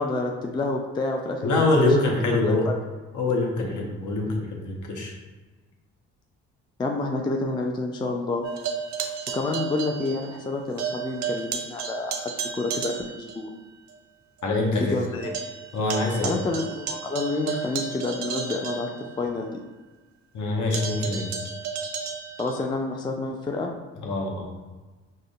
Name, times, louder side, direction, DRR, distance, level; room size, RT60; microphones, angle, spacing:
voice 1, 0.0-1.9 2.5-2.7 6.8-8.5 9.3-13.5 14.8-15.3 16.2-19.5 22.4-23.7, left 2 dB, 15° left, 2 dB, 0.3 m, -29 dB
voice 2, 1.4-2.7 3.1-5.1 14.4-15.0 15.7-16.3 20.3-21.2 24.0-24.5, left 2 dB, 55° left, 0 dB, 0.9 m, -24 dB
sound 1, 8.4-10.5 10.8-13.4 13.9-14.0 14.4-14.5 14.7-19.5 20.7-22.6, right 6 dB, 50° right, 0.6 m, -33 dB
5.0 x 2.1 x 2.3 m, 1.3 s
hypercardioid pair, 45°, 36 cm